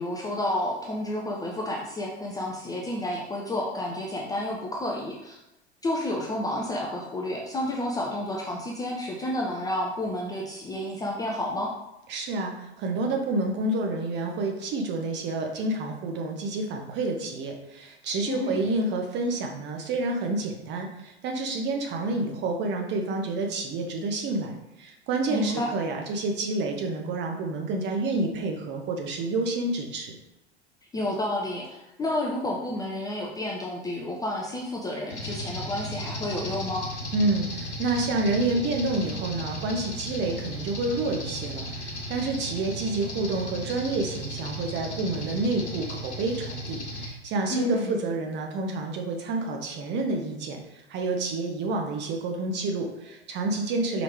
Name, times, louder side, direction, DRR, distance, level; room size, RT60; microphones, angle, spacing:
voice 1, 0.0-5.4 5.8-11.7 18.3-18.7 25.3-25.7 30.9-36.9 47.5-47.9, left 1 dB, 10° left, -2 dB, 0.4 m, -30 dB
voice 2, 12.1-30.2 37.1-54.0, right 2 dB, 30° right, 2 dB, 0.9 m, -29 dB
sound 1, 35.1-47.1, equal, 85° left, 1.0 m, -36 dB
4.9 x 3.2 x 3.3 m, 0.94 s
figure-of-eight pair, 80°, 34 cm